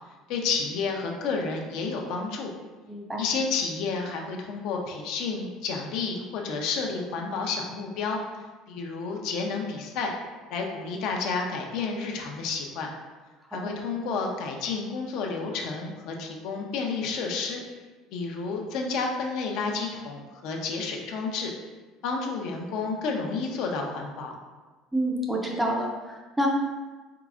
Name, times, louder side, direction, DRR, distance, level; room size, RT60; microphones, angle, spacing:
voice 1, 0.3-2.5 3.2-8.2 8.7-10.1 10.5-12.9 13.5-17.6 18.1-21.5 22.0-24.3, left 4 dB, 55° left, 1 dB, 0.6 m, -30 dB
voice 2, 2.9-3.3 13.7-13.8 24.9-26.5, right 1 dB, 5° right, -1 dB, 0.5 m, -28 dB
4.7 x 4.0 x 2.4 m, 1.3 s
cardioid pair, 170°, 0 cm